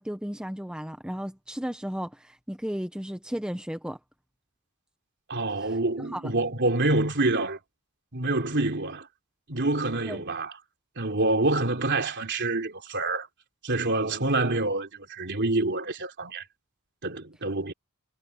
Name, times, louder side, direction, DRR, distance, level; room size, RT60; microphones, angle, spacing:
voice 1, 0.0-4.0 6.0-6.3 10.1-10.2, equal, 5° right, 0.8 m, -34 dB
voice 2, 5.3-7.6 8.1-9.1 9.5-10.5 11.0-13.3 13.6-16.4 17.0-17.7, right 2 dB, 50° right, 3.6 m, -27 dB
head